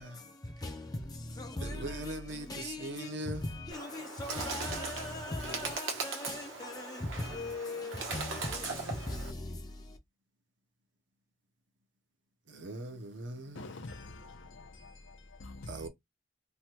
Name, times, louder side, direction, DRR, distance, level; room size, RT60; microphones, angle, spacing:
voice 1, 0.0-10.0, left 2 dB, 20° left, 0.4 m, -40 dB
voice 2, 1.6-3.4 12.5-13.7 15.7-15.9, right 2 dB, 65° right, 0.7 m, -41 dB
Bird, 3.7-9.3, right 4 dB, 85° right, 1.1 m, -39 dB
voice 3, 13.5-15.9, left 2 dB, 80° left, 0.7 m, -46 dB
3.1 x 2.2 x 2.8 m
head